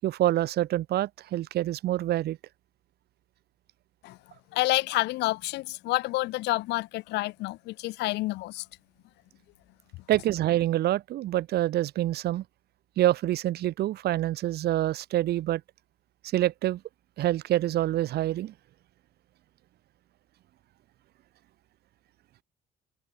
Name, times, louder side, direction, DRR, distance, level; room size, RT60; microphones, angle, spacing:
voice 1, 0.0-2.4 10.1-12.4 13.0-15.6 16.3-16.8 17.2-18.5, right 14 dB, 70° right, 7.0 m, -26 dB
voice 2, 4.5-8.6, left 19 dB, 85° left, 4.6 m, -28 dB
cardioid pair, 110°, 17 cm